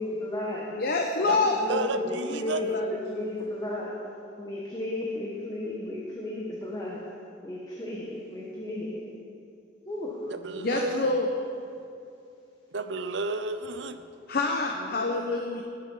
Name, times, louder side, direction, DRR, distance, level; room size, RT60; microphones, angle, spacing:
voice 1, 0.0-0.7 1.3-3.9 4.4-7.0 7.4-9.0 9.8-10.3 10.6-10.9 14.7-15.1, left 2 dB, 20° left, -5 dB, 1.4 m, -34 dB
voice 2, 0.7-1.6 2.3-2.4 2.7-2.9 10.6-11.3 14.3-15.6, left 3 dB, 50° left, 2 dB, 0.8 m, -27 dB
voice 3, 1.2-2.6 10.3-11.1 12.7-14.0, right 3 dB, 65° right, 9 dB, 0.6 m, -32 dB
18.5 x 7.3 x 5.5 m, 2.6 s
head